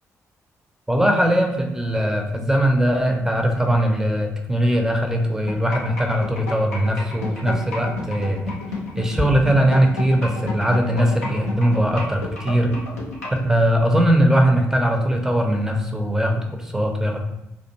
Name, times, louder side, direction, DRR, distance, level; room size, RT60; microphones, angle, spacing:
voice 1, 0.9-8.4 9.0-12.7 13.3-17.2, equal, 5° right, 3 dB, 0.5 m, -20 dB
sound 1, 5.5-13.4, left 3 dB, 90° left, 0.4 m, -30 dB
2.4 x 2.1 x 2.8 m, 0.86 s
figure-of-eight pair, 40°, 8 cm